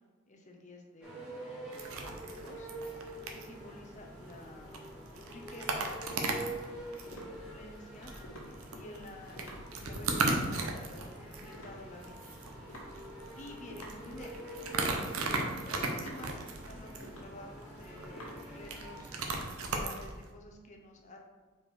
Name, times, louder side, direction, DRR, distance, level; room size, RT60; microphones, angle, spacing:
voice 1, 0.3-1.5 2.2-2.7 3.3-4.9 5.2-5.9 7.0-8.1 8.7-12.4 12.6-12.8 13.4-14.4 15.6-21.2, left 1 dB, 35° left, 2 dB, 0.8 m, -51 dB
sound 1, 1.0-19.4, right 1 dB, 5° right, 1.5 m, -47 dB
sound 2, 1.7-20.3, right 3 dB, 90° right, 0.8 m, -38 dB
sound 3, 4.6-20.1, equal, 75° left, 1.5 m, -53 dB
5.0 x 4.4 x 4.5 m, 1.3 s
head